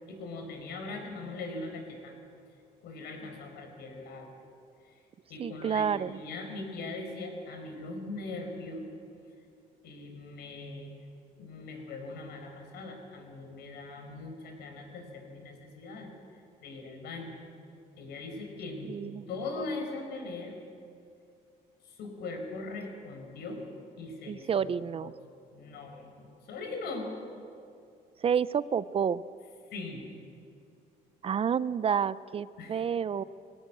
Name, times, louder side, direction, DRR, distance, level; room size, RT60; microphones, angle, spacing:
voice 1, 0.1-2.1 2.8-4.4 4.8-5.0 5.3-8.8 9.8-11.0 11.4-16.1 16.6-17.4 18.0-18.9 19.3-20.5 21.8-23.6 24.0-24.6 25.0-25.1 25.5-27.1 29.7-30.1 32.6-32.8, left 3 dB, 75° left, 3 dB, 5.0 m, -40 dB
voice 2, 5.4-6.2 18.9-19.2 24.3-25.1 28.2-29.2 31.2-33.2, right 7 dB, 35° right, 17 dB, 0.5 m, -29 dB
21.5 x 17.5 x 8.4 m, 2.4 s
cardioid pair, 110°, 17 cm